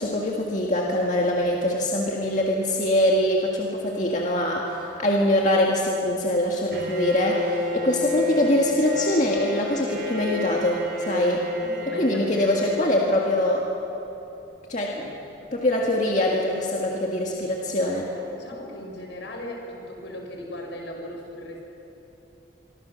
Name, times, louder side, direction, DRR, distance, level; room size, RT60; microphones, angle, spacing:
voice 1, 0.0-11.4 11.9-13.6 14.7-15.2 15.5-18.1, left 1 dB, 40° left, -2 dB, 2.0 m, -23 dB
Bowed string instrument, 6.7-13.6, left 3 dB, 55° right, 3.9 m, -31 dB
voice 2, 11.6-12.4 17.8-21.6, left 1 dB, 75° left, 2 dB, 5.6 m, -38 dB
26.5 x 24.0 x 6.6 m, 3.0 s
head